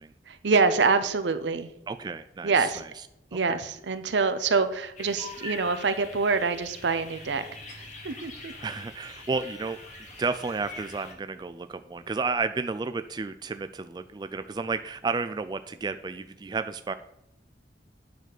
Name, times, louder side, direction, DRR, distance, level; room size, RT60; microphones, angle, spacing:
voice 1, 0.3-1.7 2.4-2.8 3.3-7.4 8.0-8.5, right 4 dB, 85° right, 11 dB, 0.7 m, -25 dB
voice 2, 1.9-2.9 3.3-3.6 8.6-9.8 10.2-16.9, right 4 dB, 25° right, 10 dB, 0.3 m, -32 dB
sound 1, 5.0-11.1, left 3 dB, 40° left, 1.5 m, -44 dB
9.2 x 4.1 x 6.5 m, 0.82 s
head